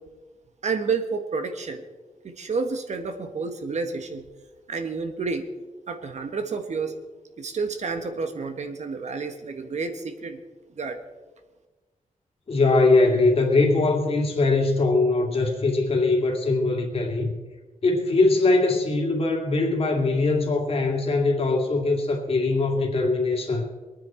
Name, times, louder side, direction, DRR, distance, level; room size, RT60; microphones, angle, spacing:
voice 1, 0.6-1.8 2.2-4.2 4.7-5.5 5.9-6.9 7.4-10.4 10.7-11.0, right 4 dB, 55° right, 7 dB, 1.4 m, -30 dB
voice 2, 12.5-17.3 17.8-23.7, left 3 dB, 45° left, 1 dB, 2.5 m, -21 dB
23.0 x 9.5 x 4.4 m, 1.2 s
wide cardioid pair, 160°, 14 cm